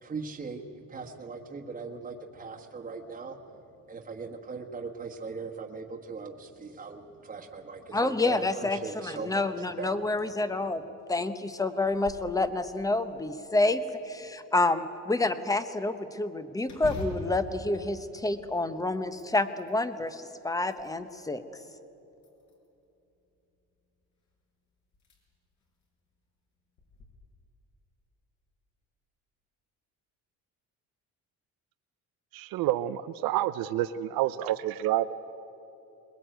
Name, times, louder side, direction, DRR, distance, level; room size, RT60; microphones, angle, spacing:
voice 1, 0.0-3.4 3.9-10.1, right 4 dB, 25° right, 1 dB, 1.5 m, -39 dB
voice 2, 7.9-10.8 11.1-21.4, left 2 dB, 10° left, 11 dB, 0.9 m, -28 dB
sound 1, 11.8-12.3 12.8-12.9 13.4-14.2 16.6-18.6 19.0-19.8 20.4-21.3 22.2-22.8 24.3-24.4 24.9-25.2 25.6-25.7 26.8-27.1, left 1 dB, 60° left, 5.3 m, -43 dB
voice 3, 32.3-35.1, right 13 dB, 85° right, 12 dB, 0.7 m, -28 dB
21.5 x 21.5 x 9.1 m, 3.0 s
cardioid pair, 140°, 34 cm